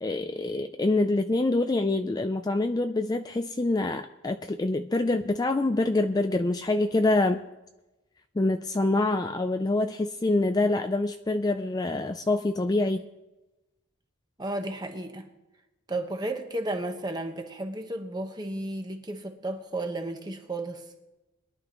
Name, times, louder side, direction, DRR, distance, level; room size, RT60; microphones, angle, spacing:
voice 1, 0.0-7.4 8.4-13.1, left 2 dB, 20° left, 7 dB, 0.3 m, -26 dB
voice 2, 14.4-15.3 15.9-20.8, right 2 dB, 20° right, 5 dB, 1.1 m, -33 dB
22.0 x 11.0 x 3.0 m, 1.0 s
head